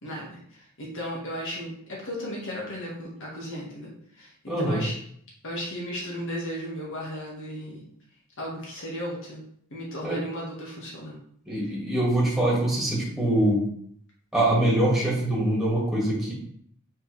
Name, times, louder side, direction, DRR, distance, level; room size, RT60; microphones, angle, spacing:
voice 1, 0.0-5.0 5.4-7.8 8.4-9.4 9.7-11.2, equal, 60° left, -4 dB, 1.9 m, -35 dB
voice 2, 4.5-4.8 10.0-10.2 11.5-13.6 14.3-16.3, right 1 dB, ahead, -5 dB, 2.1 m, -23 dB
6.1 x 5.0 x 3.4 m, 0.64 s
head